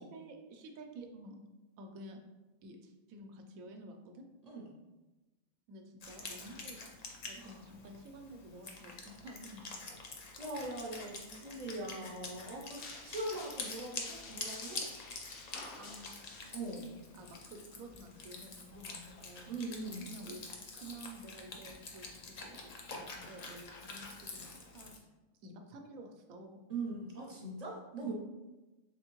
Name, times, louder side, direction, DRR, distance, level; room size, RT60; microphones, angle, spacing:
voice 1, 0.0-1.4 1.8-2.2 2.6-4.2 5.7-7.0 7.2-9.8 11.9-12.2 15.8-16.5 16.8-19.5 20.0-20.4 20.7-24.9 25.4-26.6 28.0-28.1, right 1 dB, 85° right, 4 dB, 1.0 m, -51 dB
Wind instrument woodwind instrument, 6.0-25.0, left 3 dB, 85° left, 0.3 m, -47 dB
voice 2, 10.4-14.8 16.5-16.9 19.5-20.2 26.7-28.1, right 2 dB, 50° right, -2 dB, 0.4 m, -41 dB
sound 1, 12.8-16.8, left 3 dB, 60° left, 0.7 m, -50 dB
3.4 x 3.4 x 2.9 m, 1.1 s
omnidirectional pair, 1.4 m